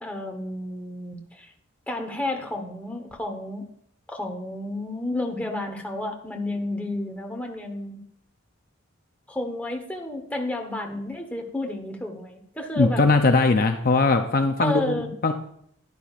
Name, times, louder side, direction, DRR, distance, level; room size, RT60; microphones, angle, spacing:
voice 1, 0.0-1.5 1.9-3.7 4.1-8.0 9.3-13.0 14.6-15.1, left 1 dB, 5° left, 2 dB, 1.1 m, -31 dB
voice 2, 12.8-15.3, left 3 dB, 45° left, 6 dB, 0.5 m, -20 dB
11.0 x 11.0 x 2.5 m, 0.67 s
head